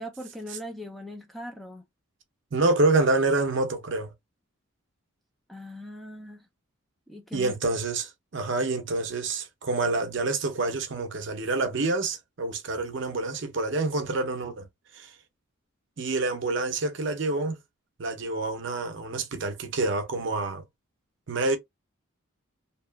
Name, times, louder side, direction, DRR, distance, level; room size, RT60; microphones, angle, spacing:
voice 1, 0.0-1.8 5.5-6.5 7.1-7.6, equal, ahead, 0.3 m, -40 dB
voice 2, 2.5-4.1 7.3-14.7 14.9-15.1 16.0-17.6 18.0-20.6 21.3-21.6, right 2 dB, 55° right, 0.6 m, -27 dB
2.8 x 2.3 x 2.2 m
head